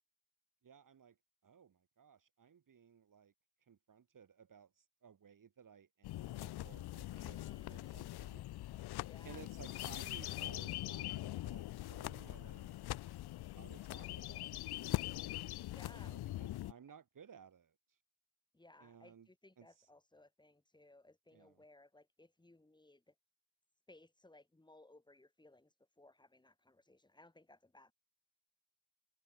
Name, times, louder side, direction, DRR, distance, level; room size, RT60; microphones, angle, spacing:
voice 1, 0.6-1.2 1.4-3.3 3.7-8.4 9.2-12.8 13.5-15.1 15.9-17.7 18.8-19.3 19.6-19.9 21.3-21.6, right 7 dB, 45° right, 1.6 m, -59 dB
sound 1, 6.0-16.7, left 15 dB, 55° left, 0.5 m, -42 dB
voice 2, 7.1-8.1 9.0-9.4 15.7-16.2 18.5-23.1 23.9-27.9, left 2 dB, 10° left, 1.6 m, -63 dB
cardioid pair, 70°, 46 cm